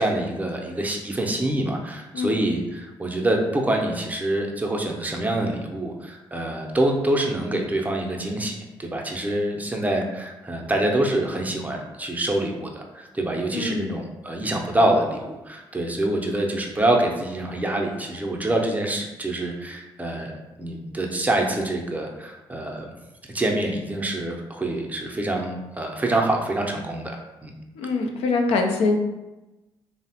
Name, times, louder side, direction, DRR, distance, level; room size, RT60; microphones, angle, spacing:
voice 1, 0.0-20.3 20.6-22.9 23.3-27.5, right 1 dB, 15° right, 1 dB, 0.5 m, -26 dB
voice 2, 13.5-13.9 27.8-29.0, left 3 dB, 85° left, 3 dB, 0.4 m, -23 dB
2.8 x 2.0 x 2.8 m, 1.0 s
supercardioid pair, 65°, 10 cm